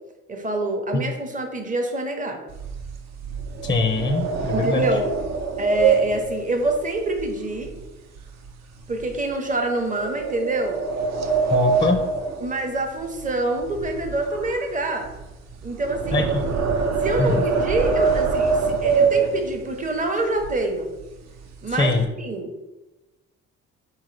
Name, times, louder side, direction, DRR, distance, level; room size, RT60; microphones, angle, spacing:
voice 1, 0.3-2.4 4.5-5.1 5.6-7.8 8.9-10.8 12.4-15.1 15.6-16.3 17.0-20.9 21.6-22.5, right 2 dB, 25° right, 4 dB, 0.8 m, -26 dB
sound 1, 2.5-7.9 8.2-8.5 9.0-9.1 9.9-13.3 13.5-19.8 20.4-20.5 20.8-21.0 21.4-22.0, right 5 dB, 60° right, 0.6 m, -24 dB
voice 2, 3.6-4.8 11.5-12.0 16.1-16.4 17.2-17.4 21.8-22.0, left 3 dB, 15° left, 5 dB, 0.4 m, -22 dB
4.3 x 3.6 x 3.2 m, 1.0 s
cardioid pair, 90°, 30 cm